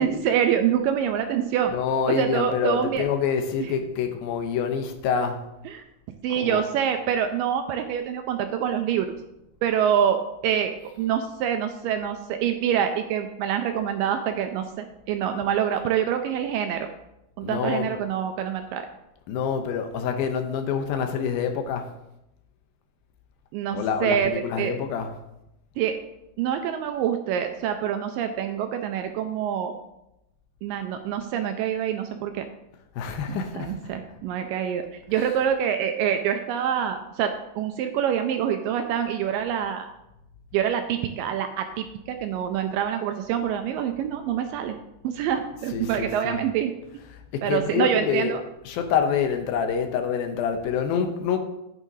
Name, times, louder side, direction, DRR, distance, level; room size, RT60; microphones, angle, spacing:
voice 1, 0.0-1.7 2.1-3.0 5.7-5.8 6.2-9.1 9.6-16.9 17.4-18.9 23.5-24.3 24.6-24.7 25.8-26.0 26.4-29.8 30.6-32.5 33.3-39.9 40.5-44.8 45.0-46.7 47.4-48.4, right 9 dB, 80° right, 6 dB, 2.1 m, -26 dB
voice 2, 1.7-5.4 6.3-6.6 17.4-17.9 19.3-21.9 23.7-25.1 33.0-33.7 35.2-35.3 45.7-46.4 47.1-48.4 48.7-51.4, left 7 dB, 80° left, 6 dB, 2.6 m, -26 dB
11.0 x 8.9 x 2.7 m, 0.86 s
omnidirectional pair, 4.3 m